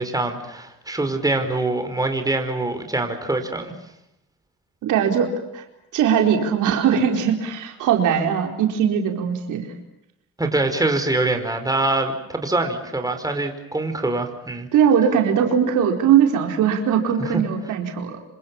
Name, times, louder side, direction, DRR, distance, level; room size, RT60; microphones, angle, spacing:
voice 1, 0.0-3.7 10.4-14.7 17.3-17.4, right 2 dB, 10° right, 6 dB, 5.2 m, -24 dB
voice 2, 4.8-5.6 5.9-9.7 14.7-18.2, right 8 dB, 85° right, 3 dB, 4.5 m, -20 dB
28.0 x 26.5 x 7.2 m, 0.86 s
cardioid pair, 90°, 30 cm